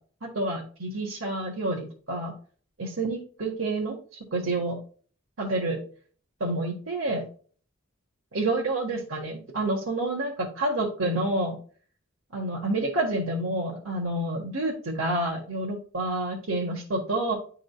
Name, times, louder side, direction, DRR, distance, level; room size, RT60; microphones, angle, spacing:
voice 1, 0.2-2.3 2.8-4.0 4.3-4.8 5.4-5.8 6.4-7.3 8.3-11.6 12.3-17.4, right 2 dB, 85° right, -2 dB, 1.5 m, -28 dB
11.0 x 3.7 x 2.3 m, 0.42 s
head